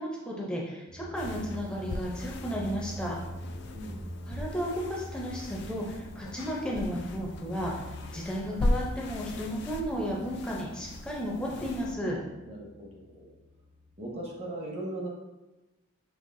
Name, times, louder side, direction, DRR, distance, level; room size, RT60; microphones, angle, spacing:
voice 1, 0.0-3.2 4.3-7.7 8.1-12.2, equal, 5° left, -3 dB, 0.6 m, -33 dB
sound 1, 0.9-14.5, equal, 75° right, 1.1 m, -45 dB
sound 2, 1.2-12.0, left 1 dB, 50° left, 0.3 m, -38 dB
voice 2, 3.7-4.1 12.4-13.3 14.0-15.1, right 1 dB, 30° right, -2 dB, 0.9 m, -39 dB
6.4 x 3.0 x 2.6 m, 1.1 s
head